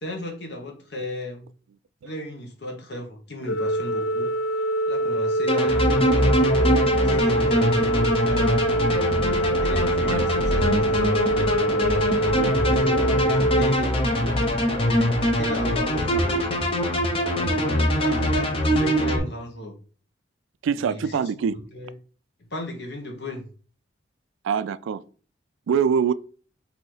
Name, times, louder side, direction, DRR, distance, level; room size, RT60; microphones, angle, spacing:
voice 1, 0.0-1.5 2.0-4.3 4.9-8.6 9.3-11.2 11.8-14.0 14.7-16.4 17.2-19.7 20.7-21.2 21.7-21.9 22.5-23.4, left 1 dB, 60° left, 1.2 m, -35 dB
Organ, 3.5-14.5, right 1 dB, 75° left, 0.4 m, -24 dB
sound 1, 5.5-19.2, left 1 dB, 30° left, 0.7 m, -23 dB
voice 2, 20.6-21.6 24.4-25.0 25.7-26.1, right 7 dB, 80° right, 0.3 m, -24 dB
4.1 x 2.8 x 4.6 m
head